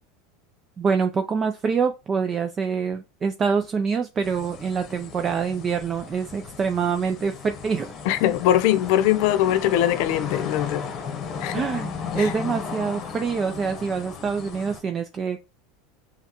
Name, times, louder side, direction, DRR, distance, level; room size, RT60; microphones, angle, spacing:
voice 1, 0.8-7.9 11.5-15.4, right 5 dB, 25° right, 0.4 m, -25 dB
sound 1, 4.2-14.8, left 6 dB, 40° left, 0.9 m, -35 dB
voice 2, 8.1-10.9 11.4-11.7 12.2-12.3, left 12 dB, 65° left, 0.6 m, -21 dB
5.6 x 2.2 x 2.9 m
supercardioid pair, 125°, 0 cm